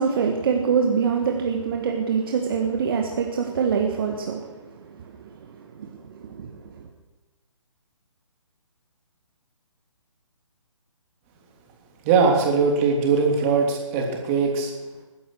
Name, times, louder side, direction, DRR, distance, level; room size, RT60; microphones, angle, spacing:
voice 1, 0.0-6.9, right 6 dB, 45° right, 2 dB, 1.8 m, -25 dB
voice 2, 12.0-14.7, right 5 dB, 25° right, 1 dB, 3.1 m, -20 dB
20.0 x 11.0 x 6.3 m, 1.2 s
hypercardioid pair, 155°, 17 cm